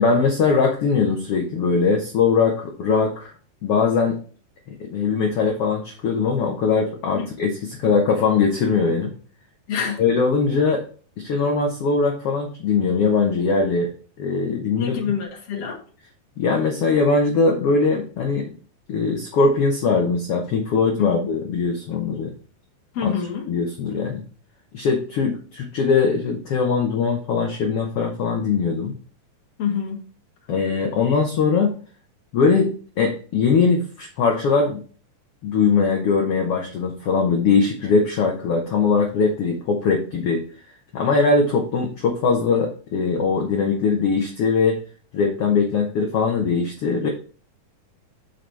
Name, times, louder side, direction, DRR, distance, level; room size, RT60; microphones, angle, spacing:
voice 1, 0.0-3.3 3.6-4.2 4.7-9.1 10.0-10.8 11.2-13.9 14.2-15.1 16.4-18.5 18.9-22.3 23.0-23.1 23.5-24.2 24.7-28.9 30.5-31.7 32.3-34.8 35.4-40.4 40.9-44.8 45.1-47.1, left 4 dB, 90° left, 1.2 m, -21 dB
voice 2, 9.7-10.0 14.8-15.8 21.0-21.3 22.9-23.5 29.6-30.1, left 7 dB, 50° left, 2.3 m, -26 dB
7.7 x 5.9 x 3.3 m
omnidirectional pair, 4.1 m